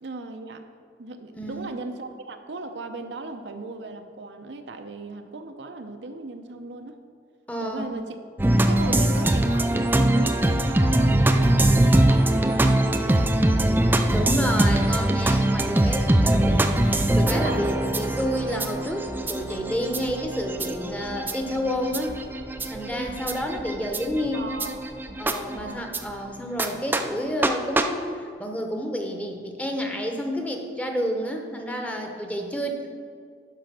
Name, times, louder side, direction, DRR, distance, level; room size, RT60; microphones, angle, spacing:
voice 1, 0.0-0.7 1.0-7.0 7.6-8.2 8.7-13.8 17.3-17.6 24.3-24.8 25.5-25.9, right 2 dB, 80° right, 6 dB, 0.7 m, -37 dB
voice 2, 1.3-1.7 7.5-7.8 8.8-9.0 14.1-22.2 22.7-24.5 25.2-32.9, equal, 10° left, 3 dB, 0.8 m, -30 dB
sound 1, 8.4-26.0 26.6-26.7 26.9-27.0 27.4-27.5 27.8-27.9, right 1 dB, 10° right, 0.4 m, -22 dB
11.5 x 5.1 x 6.0 m, 2.1 s
head